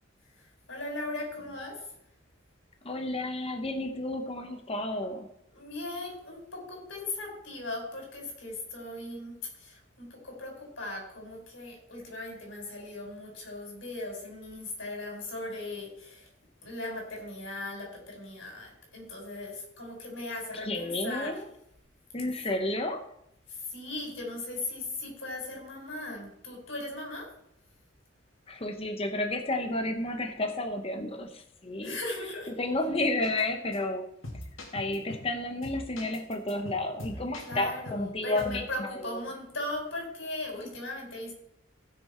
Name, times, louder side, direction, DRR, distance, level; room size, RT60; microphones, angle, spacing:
voice 1, 0.4-1.9 5.5-16.3 16.6-21.4 23.5-27.3 31.8-32.6 37.4-41.3, left 2 dB, 70° left, 0 dB, 4.6 m, -38 dB
voice 2, 2.8-5.3 20.6-21.4 22.1-23.0 28.5-32.0 32.5-34.0 34.7-38.9, left 2 dB, 30° left, 5 dB, 0.9 m, -31 dB
sound 1, 33.2-33.4 33.7-33.8 34.2-35.3 35.6-38.1 38.4-38.6, left 1 dB, 90° left, 2.4 m, -42 dB
16.0 x 6.5 x 4.4 m, 0.74 s
head